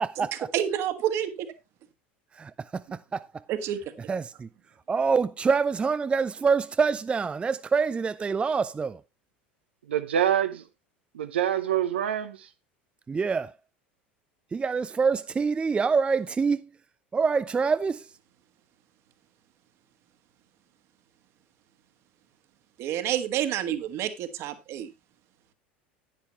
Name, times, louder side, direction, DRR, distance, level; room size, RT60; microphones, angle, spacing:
voice 1, 0.0-0.5 2.3-3.4 4.1-4.5 4.9-9.0 13.1-13.6 14.5-16.8 17.1-18.2, right 5 dB, 20° right, 0.4 m, -26 dB
voice 2, 0.5-1.5 3.5-3.8 22.8-24.9, right 10 dB, 50° right, 1.5 m, -28 dB
voice 3, 9.9-10.6 11.1-12.5, right 10 dB, 75° right, 0.7 m, -26 dB
10.5 x 9.7 x 3.0 m
figure-of-eight pair, 75°, 6 cm